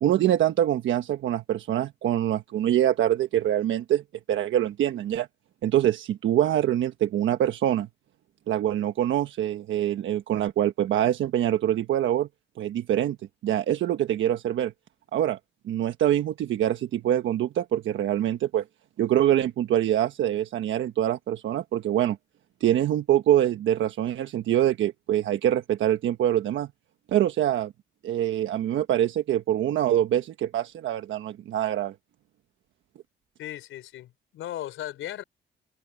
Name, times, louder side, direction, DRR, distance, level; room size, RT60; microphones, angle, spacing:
voice 1, 0.0-4.0 4.3-5.3 5.6-7.9 8.5-12.3 12.6-13.2 13.4-14.7 15.1-15.4 15.6-18.6 19.0-22.2 22.6-26.7 27.1-27.7 28.0-31.9, right 11 dB, 75° right, 1.3 m, -24 dB
voice 2, 33.4-35.2, left 13 dB, 85° left, 4.1 m, -37 dB
open air
cardioid pair, 90°, 20 cm